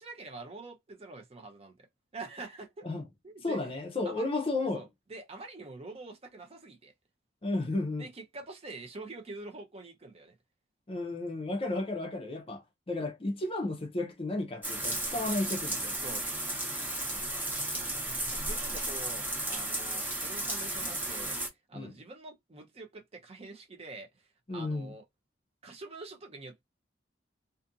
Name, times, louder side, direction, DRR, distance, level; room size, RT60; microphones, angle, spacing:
voice 1, 0.0-1.9 2.1-2.9 3.2-3.7 4.0-4.3 4.7-6.9 8.0-10.3 16.0-16.2 18.3-25.0 25.6-26.6, right 3 dB, 35° right, 0.6 m, -46 dB
voice 2, 3.4-4.8 7.4-8.1 10.9-16.0 17.1-17.2 21.7-22.0 24.5-24.9, left 2 dB, 30° left, 0.5 m, -33 dB
sound 1, 14.6-21.5, right 1 dB, 10° right, 0.9 m, -34 dB
2.5 x 2.4 x 2.6 m
head